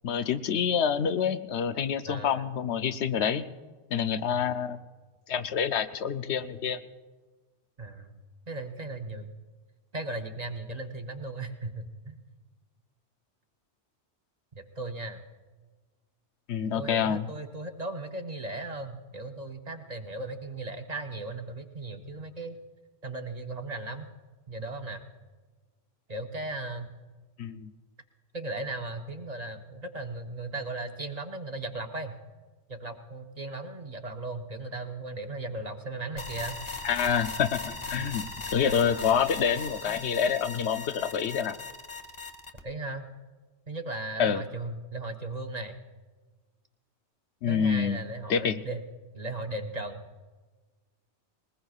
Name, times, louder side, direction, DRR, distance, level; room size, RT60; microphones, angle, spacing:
voice 1, 0.0-3.5 3.9-4.8 5.3-6.8 16.5-17.3 27.4-27.7 36.8-38.2 38.5-41.6 44.2-44.4 47.4-48.0 48.3-48.6, left 7 dB, 75° left, 10 dB, 0.9 m, -27 dB
voice 2, 2.1-2.5 4.3-4.5 7.8-8.2 8.5-9.3 9.9-12.2 14.5-15.2 16.7-22.6 23.0-24.1 24.5-25.0 26.1-26.9 28.3-32.1 32.7-36.6 38.0-38.2 42.6-43.1 43.7-45.8 47.5-48.8 49.1-50.0, right 2 dB, 40° right, 5 dB, 0.7 m, -37 dB
sound 1, 36.2-42.6, left 3 dB, 30° left, 1.0 m, -39 dB
20.5 x 19.5 x 2.4 m, 1.3 s
omnidirectional pair, 1.2 m